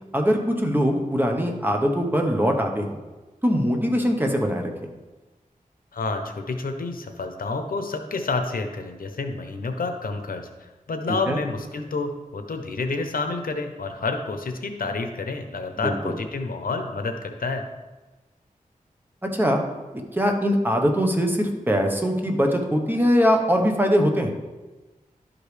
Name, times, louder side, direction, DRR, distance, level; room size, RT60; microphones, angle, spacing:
voice 1, 0.1-3.0 3.4-4.7 11.1-11.4 15.8-16.1 19.2-19.6 20.1-24.3, equal, 15° right, 2 dB, 1.0 m, -22 dB
voice 2, 5.9-17.6, left 3 dB, 85° left, 6 dB, 0.7 m, -29 dB
11.5 x 5.1 x 3.3 m, 1.2 s
wide cardioid pair, 100°, 14 cm